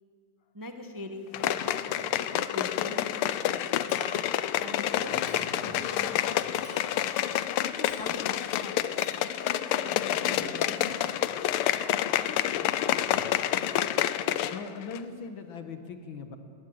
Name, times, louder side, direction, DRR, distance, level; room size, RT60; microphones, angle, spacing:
voice 1, 0.5-1.7 2.3-3.6 4.6-5.1 5.6-6.3 6.7-6.9 7.8-8.8 9.5-10.8, left 1 dB, 15° right, 5 dB, 0.8 m, -42 dB
sound 1, 1.3-14.6 14.9-15.0, left 12 dB, 85° left, 1.6 m, -28 dB
sound 2, 1.3-2.8 3.1-3.2 4.9-6.9 9.4-11.9 12.6-13.2, left 1 dB, 25° left, 4.2 m, -48 dB
Chink clink, 3.9-4.4 5.3-5.7 6.6-7.1 7.8-8.1 9.0-9.2, right 2 dB, 65° right, 5.8 m, -48 dB
voice 2, 14.5-16.4, left 5 dB, 65° left, 8 dB, 2.0 m, -40 dB
20.5 x 18.0 x 7.9 m, 2.4 s
omnidirectional pair, 2.4 m